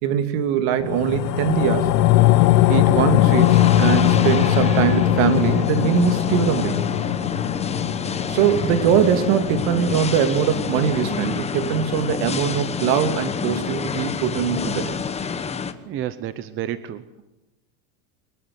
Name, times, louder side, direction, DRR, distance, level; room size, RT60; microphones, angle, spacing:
voice 1, 0.0-1.9 2.7-6.8 8.2-15.0, right 8 dB, 50° right, 9 dB, 2.9 m, -22 dB
sound 1, 0.8-11.4 11.8-11.9, left 13 dB, 90° left, 1.9 m, -20 dB
sound 2, 1.7-15.7, left 6 dB, 15° left, 1.1 m, -29 dB
voice 2, 15.9-17.3, right 11 dB, 25° right, 14 dB, 0.8 m, -31 dB
23.5 x 21.0 x 9.7 m, 1.0 s
supercardioid pair, 160°, 47 cm